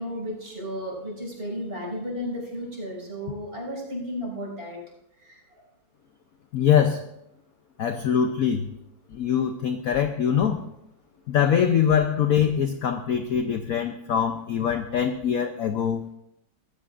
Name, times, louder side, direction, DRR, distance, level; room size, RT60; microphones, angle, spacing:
voice 1, 0.0-4.8 5.2-5.4, equal, 30° right, -2 dB, 6.2 m, -33 dB
voice 2, 6.5-7.0 7.8-8.6 9.1-10.6 11.3-16.0, left 8 dB, 60° left, 7 dB, 1.0 m, -23 dB
21.5 x 14.0 x 2.5 m, 0.81 s
omnidirectional pair, 2.1 m